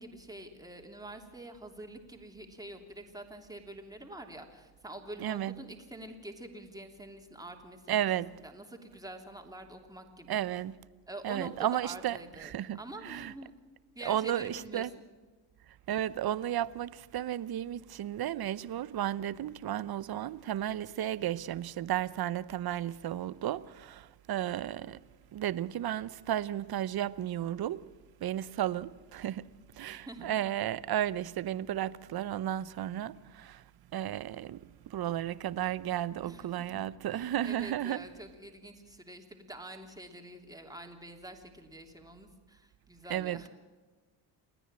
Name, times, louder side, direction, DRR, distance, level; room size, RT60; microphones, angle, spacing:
voice 1, 0.0-8.1 8.4-10.4 11.1-13.5 13.9-14.9 29.9-30.3 36.2-36.7 37.1-43.5, right 1 dB, 5° right, 3.1 m, -46 dB
voice 2, 5.2-5.5 7.9-8.3 10.3-10.7 11.2-12.8 13.0-13.3 14.0-14.9 15.9-25.0 25.3-27.9 28.2-29.5 29.8-33.6 33.9-38.1 43.1-43.5, right 11 dB, 50° right, 0.8 m, -33 dB
29.0 x 10.0 x 9.0 m
supercardioid pair, 80°, 49 cm